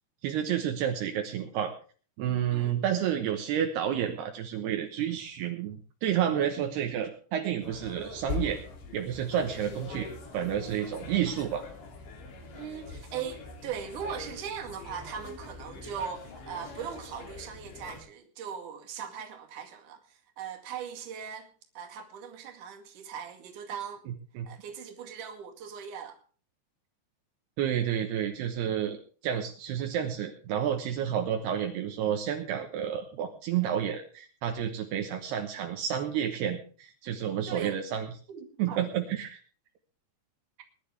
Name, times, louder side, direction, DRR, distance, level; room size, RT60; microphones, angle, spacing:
voice 1, 0.2-1.7 2.2-8.6 8.9-10.1 10.3-11.6 24.1-24.5 27.6-29.0 29.2-38.1 38.6-39.4, right 9 dB, 75° right, 3.1 m, -30 dB
sound 1, 7.6-18.0, left 4 dB, 90° left, 5.2 m, -42 dB
voice 2, 12.5-21.5 21.7-24.1 24.4-26.2 37.5-37.8 38.3-38.8, right 7 dB, 55° right, 3.2 m, -39 dB
21.5 x 11.0 x 3.5 m
omnidirectional pair, 4.9 m